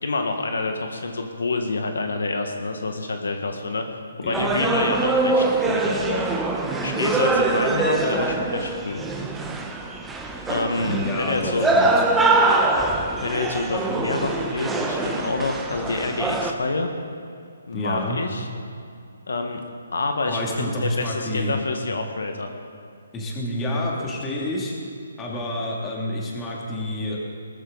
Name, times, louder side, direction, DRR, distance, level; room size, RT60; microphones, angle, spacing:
voice 1, 0.0-3.8 4.2-6.3 6.8-9.0 10.5-11.7 13.2-16.9 17.7-18.5 19.3-19.6 19.9-22.5, left 3 dB, 80° left, 4 dB, 1.6 m, -27 dB
sound 1, 4.3-16.5, right 3 dB, 10° right, 1.0 m, -23 dB
voice 2, 10.8-12.0 17.7-18.2 20.3-21.5 23.1-24.7 25.2-27.2, left 1 dB, 15° left, -3 dB, 2.7 m, -28 dB
19.0 x 14.0 x 4.1 m, 2.5 s
hypercardioid pair, 150°, 0 cm